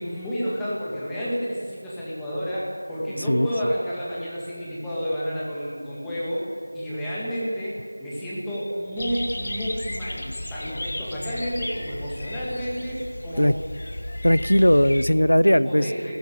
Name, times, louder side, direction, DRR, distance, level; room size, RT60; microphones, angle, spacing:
voice 1, 0.0-6.5 6.7-13.5 15.5-16.2, equal, 5° left, -9 dB, 2.0 m, -30 dB
sound 1, 9.0-15.0, left 1 dB, 30° left, 1.5 m, -34 dB
voice 2, 14.2-15.9, equal, 70° left, 17 dB, 0.7 m, -18 dB
17.5 x 15.5 x 9.6 m, 2.5 s
figure-of-eight pair, 170°, 0 cm